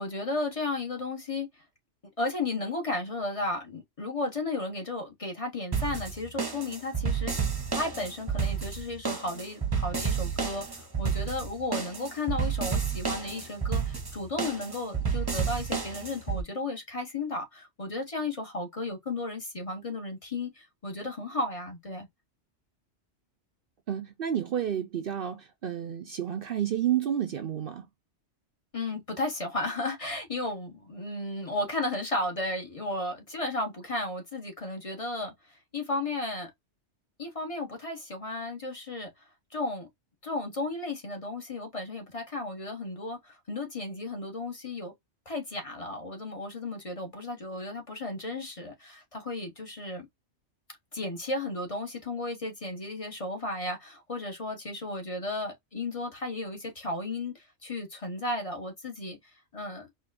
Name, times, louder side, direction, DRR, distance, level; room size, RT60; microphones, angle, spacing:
voice 1, 0.0-1.5 2.2-22.1 28.7-36.5 37.2-39.1 39.5-39.9 40.2-44.9 45.2-50.1 50.9-59.2 59.5-59.9, left 2 dB, 30° left, 1.2 m, -34 dB
sound 1, 5.7-16.4, right 6 dB, 20° right, 0.8 m, -30 dB
voice 2, 23.9-27.9, right 10 dB, 60° right, 0.7 m, -30 dB
4.4 x 2.9 x 2.5 m
omnidirectional pair, 1.2 m